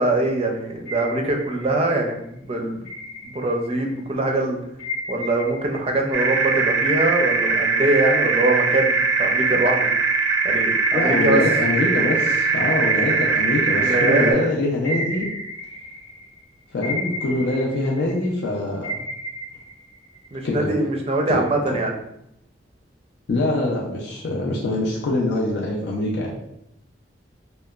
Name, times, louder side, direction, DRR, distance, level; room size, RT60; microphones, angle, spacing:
voice 1, 0.0-2.8 3.2-4.6 5.1-9.9 10.4-11.4 13.8-14.5 20.3-21.9, right 2 dB, 35° right, 2 dB, 0.4 m, -23 dB
sound 1, 0.9-2.1 2.8-4.0 4.8-8.4 8.8-10.5 10.8-14.4 14.8-16.4 16.8-18.4 18.8-20.5, equal, 85° left, 1.1 m, -34 dB
sound 2, 6.1-14.3, right 4 dB, 90° right, 0.4 m, -21 dB
voice 2, 10.9-15.3 16.7-18.9 20.4-20.7 21.3-21.4 23.3-26.3, left 2 dB, 65° left, -3 dB, 0.4 m, -24 dB
2.8 x 2.1 x 2.3 m, 0.78 s
head